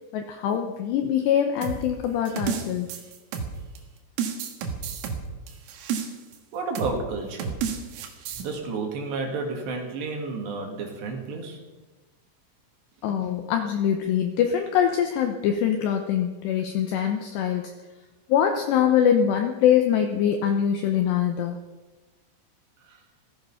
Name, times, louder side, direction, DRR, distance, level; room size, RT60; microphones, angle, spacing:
voice 1, 0.1-2.9 13.0-17.7 18.3-21.6, left 9 dB, 75° left, 4 dB, 2.7 m, -23 dB
sound 1, 1.6-3.8 4.2-6.4 6.8-7.0 7.4-8.4, right 7 dB, 85° right, 4.1 m, -31 dB
voice 2, 6.5-7.6 8.4-11.6 22.9-23.0, right 3 dB, 65° right, 2 dB, 4.2 m, -31 dB
16.0 x 14.5 x 5.7 m, 1.2 s
omnidirectional pair, 5.7 m